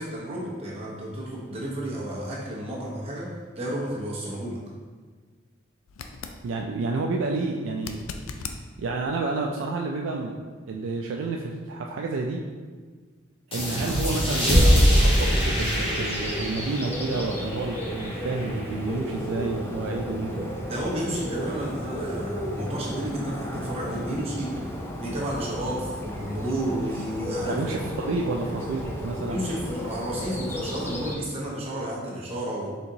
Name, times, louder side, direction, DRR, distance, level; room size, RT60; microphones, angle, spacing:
voice 1, 0.0-4.6 20.7-24.7 25.0-27.6 29.3-32.7, right 1 dB, 30° right, -6 dB, 1.0 m, -32 dB
sound 1, 5.9-6.4 7.8-8.6 11.6-11.7, left 5 dB, 90° left, 0.3 m, -37 dB
voice 2, 6.4-8.0 8.3-8.5 8.8-10.4 10.7-12.4 13.5-20.6 27.5-29.4, right 3 dB, 70° right, 1 dB, 0.3 m, -30 dB
sound 2, 13.5-18.7, equal, 30° left, 1.1 m, -23 dB
Bird, 13.6-31.2, equal, 10° left, 0.4 m, -34 dB
4.3 x 3.7 x 2.7 m, 1.5 s
head